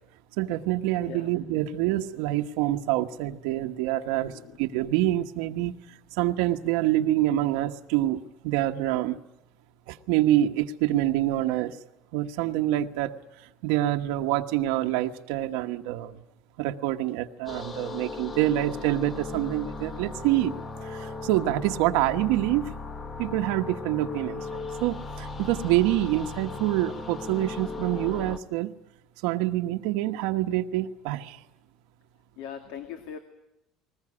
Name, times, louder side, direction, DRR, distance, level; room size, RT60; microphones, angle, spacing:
voice 1, 0.4-5.7 6.2-9.2 9.9-11.8 12.1-13.2 13.6-16.2 16.6-20.5 20.8-22.7 23.2-28.7 29.2-31.4, right 14 dB, 80° right, 4 dB, 1.2 m, -26 dB
voice 2, 4.3-4.6 32.4-33.2, left 8 dB, 70° left, 7 dB, 2.3 m, -40 dB
sound 1, 17.5-28.4, left 3 dB, 15° left, 1.1 m, -37 dB
20.5 x 20.0 x 9.8 m, 0.90 s
cardioid pair, 175°, 0 cm